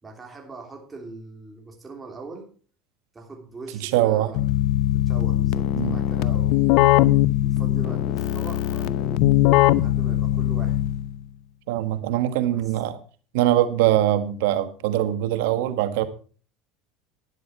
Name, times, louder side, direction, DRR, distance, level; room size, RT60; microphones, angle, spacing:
voice 1, 0.0-2.5 3.1-4.4 4.9-6.8 7.4-9.3 9.7-10.8 12.5-12.8, right 3 dB, 20° right, 1 dB, 3.4 m, -41 dB
voice 2, 3.8-4.3 5.7-6.0 11.7-13.0 13.3-16.0, right 13 dB, 80° right, 11 dB, 1.6 m, -22 dB
Keyboard (musical), 4.3-11.2, left 14 dB, 70° left, 0.7 m, -20 dB
11.5 x 10.0 x 4.6 m, 0.40 s
supercardioid pair, 110°, 0 cm